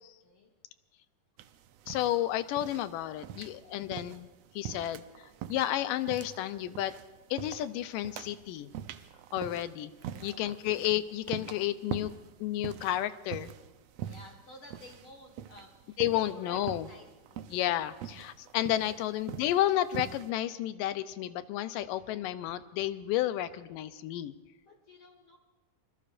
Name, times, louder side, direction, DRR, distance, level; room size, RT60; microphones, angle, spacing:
voice 1, 0.0-0.5 8.3-8.4 10.1-10.6 11.8-12.0 13.1-13.7 14.0-17.5 18.8-19.0 24.7-25.4, left 1 dB, 45° left, 3 dB, 2.2 m, -54 dB
sound 1, 1.4-20.3, right 10 dB, 85° right, 1.4 m, -44 dB
voice 2, 1.9-4.3 4.6-5.0 5.5-6.9 7.3-8.7 9.3-9.9 10.2-12.1 12.4-13.5 16.0-16.9 17.5-24.3, left 13 dB, 85° left, 12 dB, 2.4 m, -31 dB
26.0 x 21.0 x 2.6 m, 1.2 s
omnidirectional pair, 3.8 m